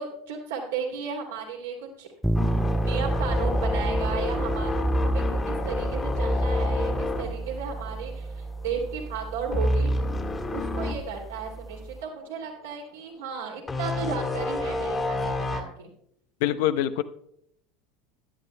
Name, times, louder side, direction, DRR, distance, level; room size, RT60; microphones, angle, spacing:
voice 1, 0.0-2.1 2.8-9.9 10.5-15.9, right 5 dB, 75° right, 0 dB, 2.6 m, -34 dB
sound 1, 2.2-12.0, right 2 dB, ahead, 0.3 m, -32 dB
sound 2, 2.3-8.4 8.7-9.0 9.5-11.0 11.5-11.6 13.7-15.6, left 1 dB, 20° left, 1.7 m, -28 dB
voice 2, 16.4-17.0, left 12 dB, 60° left, 12 dB, 0.6 m, -24 dB
16.0 x 10.5 x 2.2 m, 0.71 s
figure-of-eight pair, 75°, 0 cm